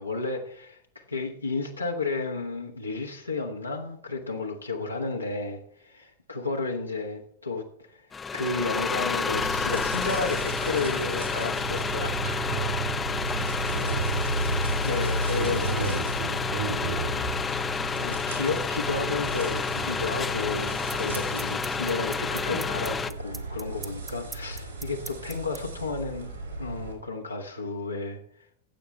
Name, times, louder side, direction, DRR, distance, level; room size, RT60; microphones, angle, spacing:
voice 1, 0.0-12.4 14.6-16.0 17.6-26.3 26.6-28.2, left 3 dB, 85° left, 1 dB, 1.2 m, -32 dB
sound 1, 8.1-23.1, left 5 dB, 15° left, 0.5 m, -30 dB
sound 2, 9.3-26.9, right 2 dB, 75° right, 4.5 m, -34 dB
voice 2, 12.2-12.8 13.3-14.8 15.0-17.4, right 6 dB, 55° right, 6 dB, 3.1 m, -36 dB
sound 3, 20.9-25.6, right 4 dB, 15° right, 1.0 m, -39 dB
15.5 x 8.1 x 3.3 m, 0.64 s
figure-of-eight pair, 90°, 0 cm